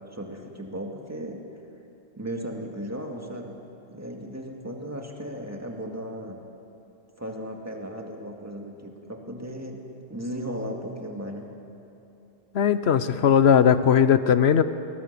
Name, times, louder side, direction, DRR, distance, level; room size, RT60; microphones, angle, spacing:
voice 1, 0.1-1.4 2.1-3.6 3.9-6.4 7.2-9.8 10.1-11.5, equal, 15° right, 1 dB, 2.1 m, -36 dB
voice 2, 12.5-14.6, left 8 dB, 70° left, 12 dB, 1.0 m, -18 dB
21.5 x 20.0 x 6.8 m, 2.8 s
omnidirectional pair, 1.1 m